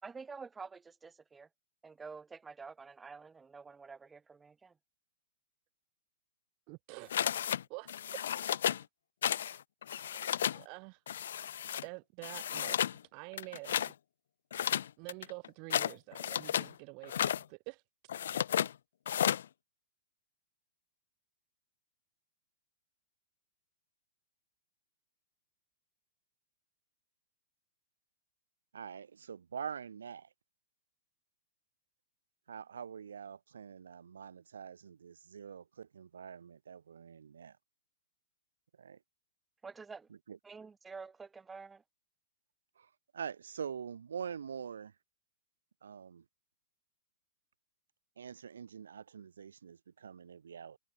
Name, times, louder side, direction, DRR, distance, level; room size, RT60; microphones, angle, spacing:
voice 1, 0.0-1.5 1.8-4.7 39.6-40.1 40.4-41.8, right 5 dB, 10° right, 3.2 m, -48 dB
voice 2, 6.7-7.1 7.7-8.0 10.3-11.0 11.8-12.8 13.1-13.9 15.0-17.2 17.5-17.8, right 39 dB, 45° right, 1.4 m, -47 dB
sound 1, 7.1-7.6 7.9-8.8 9.2-9.6 9.8-10.6 11.1-11.8 12.2-13.0 13.3-13.9 14.5-16.7 17.0-17.4 18.1-18.7 19.1-19.4, left 9 dB, 70° left, 0.9 m, -33 dB
voice 3, 28.7-30.3 32.5-37.6 38.8-39.0 40.3-40.4 42.8-44.9 45.8-46.2 48.2-50.8, right 7 dB, 85° right, 1.6 m, -45 dB
hypercardioid pair, 125°, 0 cm